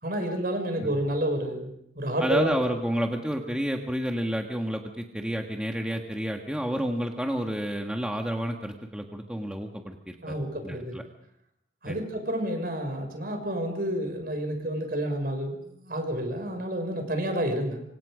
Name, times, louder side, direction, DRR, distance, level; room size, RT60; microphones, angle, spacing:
voice 1, 0.0-1.7 2.0-2.7 10.2-11.0 11.8-17.8, right 1 dB, 55° right, 5 dB, 6.0 m, -30 dB
voice 2, 2.2-10.3 10.6-11.0 11.9-12.0, equal, 5° right, 2 dB, 1.6 m, -30 dB
27.0 x 26.0 x 5.1 m, 0.73 s
head